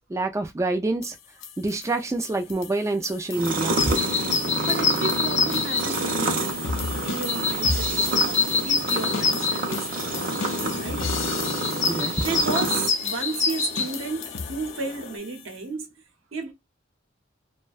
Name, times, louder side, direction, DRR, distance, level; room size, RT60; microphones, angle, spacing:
voice 1, 0.1-1.2 1.6-3.9 11.9-12.1, right 2 dB, 15° right, 0.3 m, -26 dB
sound 1, 1.0-15.6, left 6 dB, 85° left, 0.5 m, -36 dB
sound 2, 3.3-12.9, right 2 dB, 45° right, 0.7 m, -28 dB
sound 3, 3.7-15.2, left 5 dB, 40° left, 0.6 m, -28 dB
voice 2, 4.7-6.6 7.0-10.5 10.7-11.0 11.9-15.9 16.3-16.5, right 4 dB, 85° right, 0.8 m, -33 dB
2.5 x 2.2 x 2.3 m
head